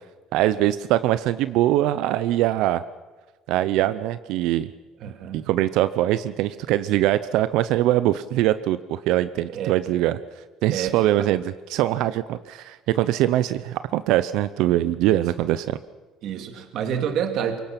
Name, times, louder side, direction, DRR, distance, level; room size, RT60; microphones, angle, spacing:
voice 1, 0.3-2.8 3.5-4.7 5.3-10.2 10.6-15.8, right 14 dB, 75° right, 13 dB, 0.7 m, -22 dB
voice 2, 5.0-5.5 9.5-9.8 10.7-11.3 15.1-15.3 16.2-17.6, right 8 dB, 60° right, 6 dB, 2.3 m, -29 dB
25.0 x 23.0 x 6.0 m, 1.3 s
cardioid pair, 145°, 0 cm